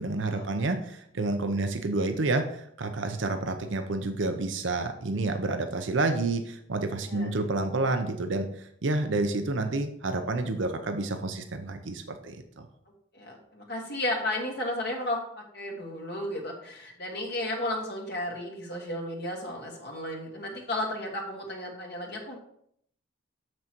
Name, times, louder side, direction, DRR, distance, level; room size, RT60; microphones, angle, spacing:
voice 1, 0.0-12.4, right 2 dB, 75° right, 6 dB, 0.7 m, -29 dB
voice 2, 13.1-22.4, left 1 dB, 55° left, -1 dB, 1.6 m, -33 dB
7.3 x 6.1 x 4.5 m, 0.69 s
head